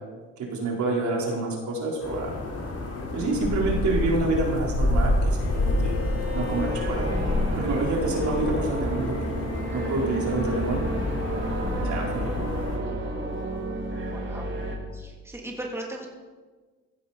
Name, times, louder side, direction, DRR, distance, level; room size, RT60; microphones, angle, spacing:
voice 1, 0.4-2.3 3.1-6.0 6.3-7.0 7.6-9.1 9.7-10.9 11.8-12.3, right 3 dB, 70° right, -2 dB, 4.2 m, -27 dB
sound 1, 2.0-12.8, left 2 dB, 55° left, 4.3 m, -28 dB
Bowed string instrument, 5.4-10.1, left 9 dB, 70° left, 4.4 m, -42 dB
sound 2, 6.2-14.8, right 1 dB, 40° right, 3.5 m, -31 dB
voice 2, 14.0-14.5 14.9-16.1, right 1 dB, 10° right, -1 dB, 3.0 m, -37 dB
15.5 x 15.0 x 4.2 m, 1.4 s
cardioid pair, 90°, 30 cm